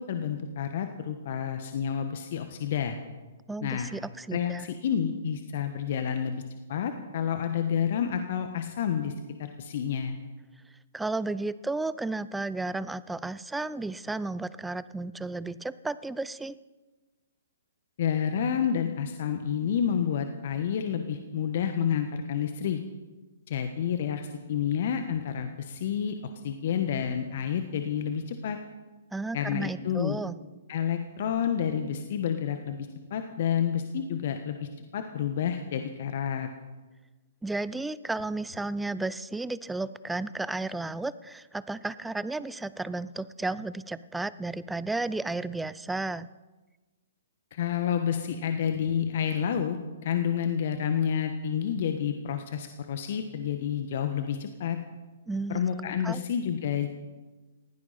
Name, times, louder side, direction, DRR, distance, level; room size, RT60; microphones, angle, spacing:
voice 1, 0.0-3.0 3.6-3.9 4.3-6.4 6.7-9.1 9.4-10.2 18.0-22.8 23.5-26.1 26.4-28.6 29.3-30.2 30.7-36.5 47.5-49.8 50.0-54.8 55.5-56.9, left 8 dB, 50° left, 7 dB, 1.3 m, -29 dB
voice 2, 3.5-4.7 10.9-16.5 29.1-30.4 37.4-46.3 55.3-55.6 56.0-56.2, right 2 dB, 5° right, 17 dB, 0.5 m, -33 dB
19.5 x 16.0 x 4.2 m, 1.2 s
figure-of-eight pair, 120°, 0 cm